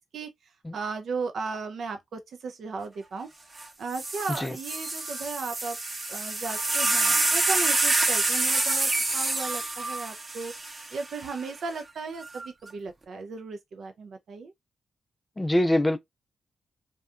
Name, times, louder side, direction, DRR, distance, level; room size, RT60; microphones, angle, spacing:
voice 1, 0.7-3.3 3.8-5.8 6.1-10.5 10.9-14.5, right 4 dB, 70° right, 0.4 m, -35 dB
sound 1, 3.6-3.7 3.9-11.3 12.2-12.7, right 2 dB, 35° right, 0.7 m, -27 dB
voice 2, 15.4-16.0, left 1 dB, 15° left, 0.4 m, -23 dB
2.7 x 2.2 x 2.4 m
cardioid pair, 65°, 0 cm